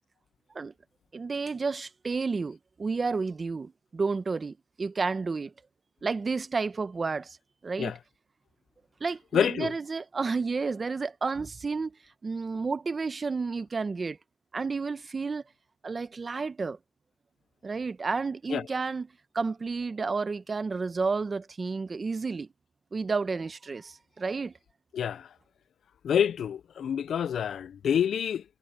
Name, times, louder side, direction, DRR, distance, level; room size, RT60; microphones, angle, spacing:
voice 1, 1.1-5.5 6.0-7.4 7.6-7.9 9.0-12.0 12.2-14.2 14.5-15.4 15.8-16.8 17.6-19.1 19.3-22.5 22.9-24.5, right 4 dB, 30° right, 1.1 m, -31 dB
voice 2, 9.3-9.7 18.5-18.6 24.9-25.3 26.0-28.4, left 8 dB, 60° left, 0.4 m, -27 dB
cardioid pair, 90°, 0 cm